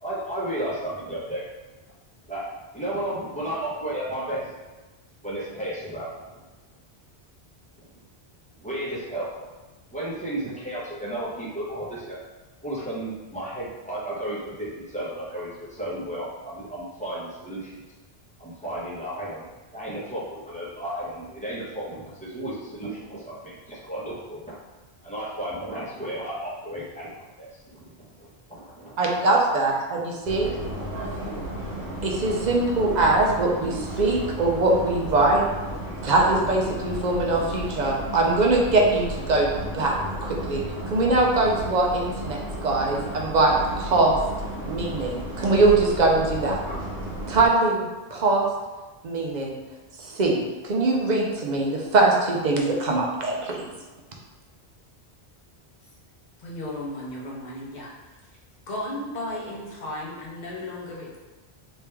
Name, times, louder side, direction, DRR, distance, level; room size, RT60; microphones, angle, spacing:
voice 1, 0.0-1.4 2.3-2.4 2.7-4.5 5.2-6.1 7.8-7.9 8.6-9.3 9.9-12.2 12.6-17.8 18.4-19.4 19.7-24.6 25.0-29.2 30.4-30.8, right 1 dB, 5° left, -9 dB, 1.1 m, -33 dB
voice 2, 29.0-30.5 32.0-35.4 36.0-39.5 39.7-39.9 40.2-44.2 44.6-46.6 47.3-47.8 48.1-48.5 49.0-49.5 50.0-53.7, right 2 dB, 50° right, -1 dB, 0.7 m, -22 dB
sound 1, 30.2-47.5, right 1 dB, 70° right, 1.5 m, -33 dB
voice 3, 56.4-57.9 58.7-61.2, left 1 dB, 45° left, -5 dB, 0.9 m, -34 dB
3.2 x 2.9 x 3.4 m, 1.2 s
omnidirectional pair, 1.1 m